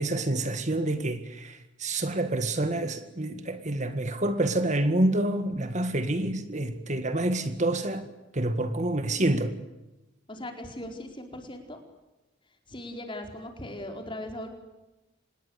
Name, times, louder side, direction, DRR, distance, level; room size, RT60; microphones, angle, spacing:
voice 1, 0.0-8.1 8.3-9.5, right 1 dB, 35° right, 10 dB, 1.8 m, -27 dB
voice 2, 10.3-11.8 12.7-14.5, left 1 dB, 25° left, 4 dB, 4.6 m, -39 dB
26.5 x 20.5 x 8.3 m, 1.0 s
head